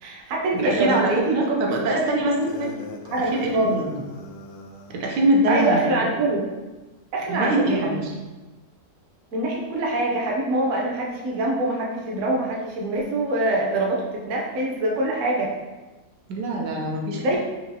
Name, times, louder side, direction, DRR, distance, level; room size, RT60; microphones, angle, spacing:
voice 1, 0.0-2.5 3.1-3.8 5.5-6.4 7.1-8.0 9.3-15.5 17.2-17.4, right 2 dB, 60° right, -2 dB, 0.9 m, -24 dB
voice 2, 0.5-2.3 2.6-2.7 3.2-4.0 4.9-5.8 7.3-8.1 16.3-17.4, right 1 dB, 90° right, 0 dB, 1.3 m, -24 dB
sound 1, 2.4-5.0, left 1 dB, 70° left, 0.8 m, -41 dB
4.6 x 2.9 x 2.7 m, 1.2 s
omnidirectional pair, 1.8 m